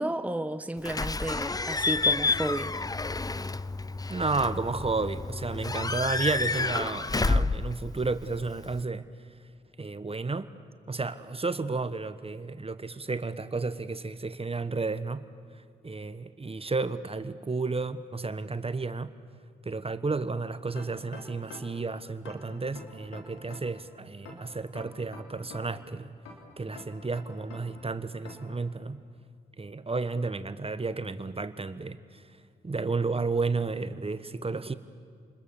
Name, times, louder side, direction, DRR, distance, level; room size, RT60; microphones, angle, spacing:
voice 1, 0.0-2.7, right 1 dB, 5° right, 10 dB, 1.0 m, -32 dB
Slam / Squeak / Alarm, 0.8-8.8, left 3 dB, 20° left, 0.6 m, -30 dB
voice 2, 4.1-9.1 9.8-10.5 10.9-15.2 15.8-19.1 19.6-26.1 26.6-29.0 29.6-32.2 32.6-34.7, right 3 dB, 30° right, 13 dB, 1.2 m, -32 dB
sound 1, 20.8-21.8 22.3-23.8 24.3-25.8 26.3-27.8 28.3-28.6, left 3 dB, 90° left, 3.3 m, -46 dB
28.5 x 21.0 x 7.2 m, 2.3 s
supercardioid pair, 45°, 20 cm